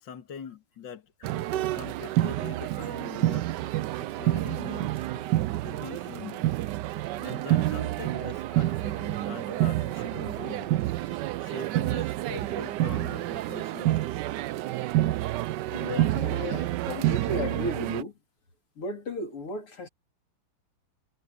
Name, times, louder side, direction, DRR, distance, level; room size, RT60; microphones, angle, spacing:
voice 1, 0.0-3.5 4.0-5.1 5.6-6.5 7.2-10.8 11.4-14.1, left 7 dB, 55° left, 2.5 m, -43 dB
sound 1, 1.2-18.0, right 15 dB, 85° right, 0.9 m, -28 dB
voice 2, 15.7-18.1 18.8-19.9, left 2 dB, 80° left, 4.5 m, -35 dB
omnidirectional pair, 2.4 m